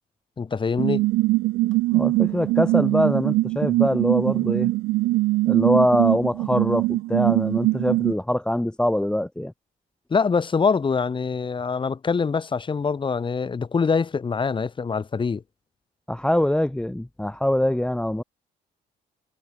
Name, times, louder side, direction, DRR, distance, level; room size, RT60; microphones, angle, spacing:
voice 1, 0.4-1.0 10.1-15.4, left 5 dB, 30° left, 5.1 m, -24 dB
sound 1, 0.8-8.1, right 20 dB, 90° right, 3.0 m, -22 dB
voice 2, 1.9-4.7 5.5-9.5 16.1-18.2, left 1 dB, 5° left, 1.2 m, -23 dB
cardioid pair, 110°, 17 cm